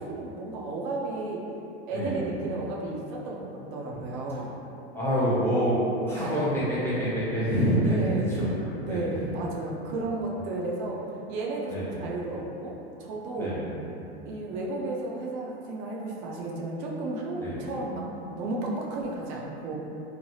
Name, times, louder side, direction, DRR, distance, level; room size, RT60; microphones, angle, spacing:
voice 1, 0.0-1.4 1.9-4.5 6.1-6.3 7.8-8.3 8.8-11.0 11.3-12.7 13.0-13.5 14.3-18.1 18.3-19.8, right 2 dB, 45° right, -2 dB, 0.6 m, -33 dB
voice 2, 1.9-2.3 3.9-4.0 4.9-5.8 6.0-9.3 11.7-12.0 13.4-13.8 17.4-17.7, equal, 5° left, -10 dB, 0.9 m, -27 dB
3.2 x 2.1 x 2.7 m, 2.8 s
hypercardioid pair, 105°, 33 cm